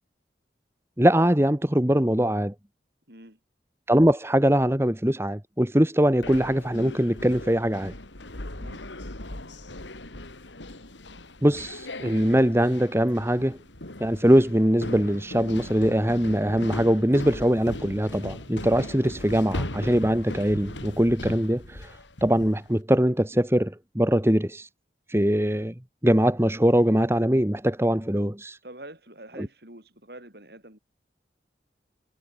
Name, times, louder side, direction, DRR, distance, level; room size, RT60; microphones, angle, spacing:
voice 1, 1.0-2.5 3.9-7.9 11.4-13.6 14.0-21.9 22.2-24.7 25.1-25.7 26.0-28.6 29.4-29.5, equal, 15° right, 1.4 m, -22 dB
voice 2, 3.1-3.4 8.6-8.8 28.6-30.8, right 1 dB, 60° right, 5.7 m, -45 dB
sound 1, 6.2-22.7, left 1 dB, 85° left, 3.3 m, -38 dB
head